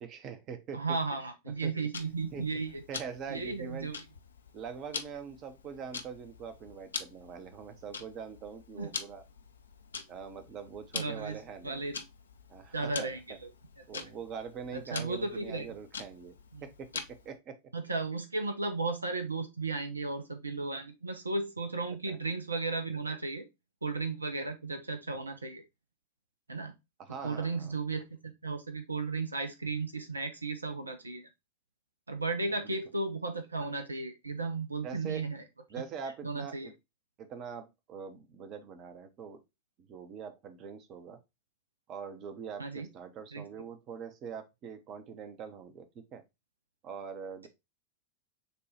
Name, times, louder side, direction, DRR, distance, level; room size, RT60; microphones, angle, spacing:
voice 1, 0.0-0.8 1.5-1.7 2.3-2.5 2.9-3.9 4.5-9.2 10.1-11.8 12.5-13.4 13.9-16.3 16.6-17.6 22.1-22.2 27.0-27.8 32.4-32.8 34.8-35.2 35.7-36.7 37.2-39.4 39.8-41.2 41.9-46.2 46.8-47.5, right 6 dB, 35° right, 0.8 m, -43 dB
voice 2, 0.7-2.8 3.3-4.0 8.8-8.9 10.9-11.4 11.6-12.0 12.7-13.5 13.9-14.0 14.7-15.7 16.5-16.6 17.7-23.4 23.8-25.6 26.5-26.7 27.2-31.3 32.1-35.4 36.2-36.7 42.6-42.9 43.3-43.4, right 3 dB, 80° right, 0.5 m, -35 dB
Tick-tock, 1.9-17.4, left 5 dB, 70° left, 0.5 m, -45 dB
6.7 x 2.3 x 3.1 m
figure-of-eight pair, 90°, 0 cm